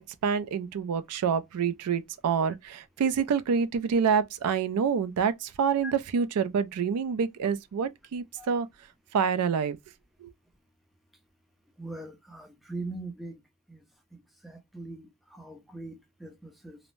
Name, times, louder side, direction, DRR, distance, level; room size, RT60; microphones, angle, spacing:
voice 1, 0.0-8.7 9.1-9.8 10.2-10.3, right 6 dB, 90° right, 0.4 m, -27 dB
voice 2, 11.8-13.3 13.7-13.8 14.1-16.8, right 2 dB, ahead, 0.4 m, -41 dB
2.6 x 2.0 x 3.0 m
head